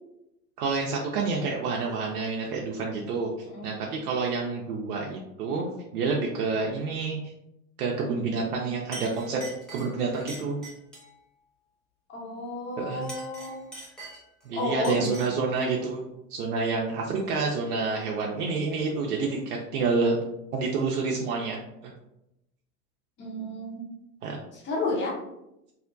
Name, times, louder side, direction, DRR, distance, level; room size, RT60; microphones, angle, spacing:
voice 1, 0.6-7.3 7.8-9.4 9.7-10.6 12.8-13.1 14.5-16.0 16.3-20.2 20.5-21.9 24.2-24.4, right 4 dB, 70° right, -1 dB, 0.6 m, -28 dB
voice 2, 3.5-3.9 12.1-13.7 14.5-15.2 23.2-23.9 24.5-25.1, left 2 dB, 25° left, -3 dB, 0.8 m, -32 dB
Chink clink, 8.4-8.6 8.9-11.1 12.9-14.5 14.8-15.4, right 1 dB, ahead, 0.3 m, -43 dB
2.7 x 2.1 x 2.5 m, 0.87 s
hypercardioid pair, 90°, 48 cm